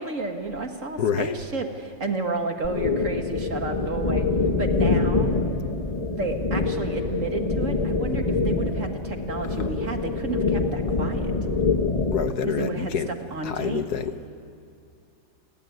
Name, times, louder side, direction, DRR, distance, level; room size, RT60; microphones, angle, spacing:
voice 1, 0.0-4.3 4.6-5.3 6.1-11.3 12.5-13.9, right 3 dB, 40° right, 4 dB, 2.1 m, -31 dB
voice 2, 1.0-1.3 12.1-13.1 13.4-14.3, left 7 dB, 55° left, 10 dB, 1.4 m, -27 dB
sound 1, 2.6-12.3, left 3 dB, 20° left, 1.3 m, -25 dB
29.0 x 20.5 x 9.4 m, 2.5 s
omnidirectional pair, 2.1 m